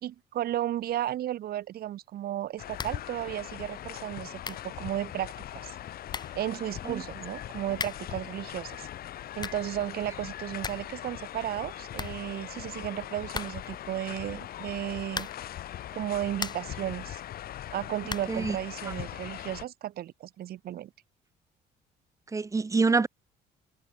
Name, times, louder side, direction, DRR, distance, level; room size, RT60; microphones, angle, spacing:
voice 1, 0.0-5.8 6.3-8.9 9.4-15.3 15.9-17.2 17.7-20.9, right 12 dB, 65° right, 4.3 m, -34 dB
sound 1, 2.6-19.6, left 12 dB, 65° left, 5.0 m, -41 dB
sound 2, 2.8-3.1 3.4-3.5 4.1-4.2 4.4-4.8 5.7-5.8 6.1-6.5 7.7-8.2 9.1-9.7 10.1-10.2 10.4-11.0 11.2-11.3 11.6-11.7 11.9-12.7 13.3-13.8 15.1-15.6 16.1-16.8 18.1-18.5, left 4 dB, 25° left, 3.3 m, -38 dB
voice 2, 22.3-23.1, right 4 dB, 20° right, 1.2 m, -25 dB
cardioid pair, 110°, 17 cm